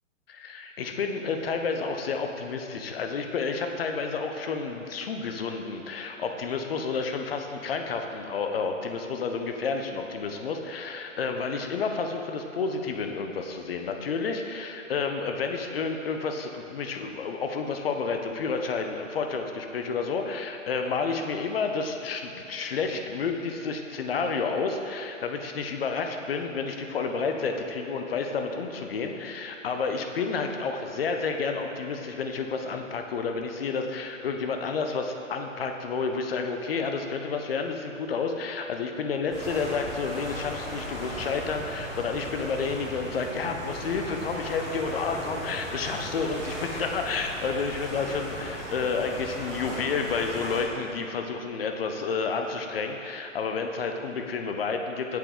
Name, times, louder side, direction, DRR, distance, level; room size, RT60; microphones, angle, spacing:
voice 1, 0.3-55.2, left 4 dB, 45° left, 4 dB, 0.6 m, -30 dB
sound 1, 39.3-50.6, equal, ahead, 0.6 m, -37 dB
7.5 x 5.4 x 3.5 m, 2.8 s
figure-of-eight pair, 135°, 40 cm